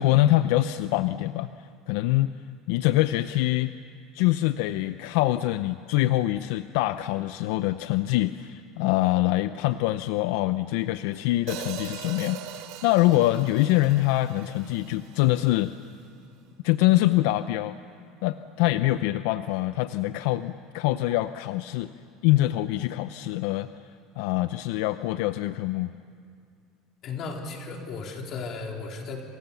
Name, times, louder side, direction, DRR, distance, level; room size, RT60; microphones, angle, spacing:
voice 1, 0.0-1.5 1.9-2.3 2.7-3.7 4.1-12.4 12.8-15.7 16.6-17.8 18.2-21.9 22.2-23.7 24.2-25.9, left 16 dB, 75° left, 12 dB, 0.6 m, -24 dB
Hi-hat, 11.5-15.7, right 11 dB, 70° right, 2.8 m, -41 dB
voice 2, 27.0-29.2, left 4 dB, 40° left, 1 dB, 3.9 m, -35 dB
28.5 x 28.0 x 7.1 m, 2.3 s
cardioid pair, 150°, 0 cm